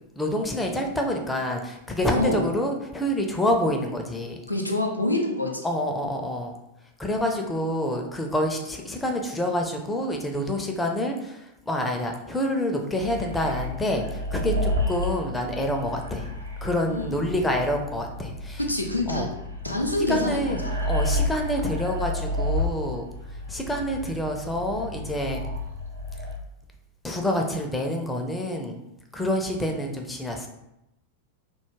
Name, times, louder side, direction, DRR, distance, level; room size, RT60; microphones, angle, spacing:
voice 1, 0.2-4.4 5.6-6.6 7.0-16.3 16.6-18.6 19.1-19.3 20.1-23.0 23.5-25.5 27.0-28.8 29.1-30.5, left 1 dB, 10° left, 2 dB, 0.4 m, -27 dB
voice 2, 2.1-2.4 4.5-5.6 16.9-17.2 18.7-19.3 19.6-20.9, left 2 dB, 85° left, 1 dB, 0.4 m, -26 dB
sound 1, 13.0-26.4, left 1 dB, 75° right, 0.4 m, -31 dB
2.2 x 2.0 x 3.1 m, 0.86 s
figure-of-eight pair, 90°, 0 cm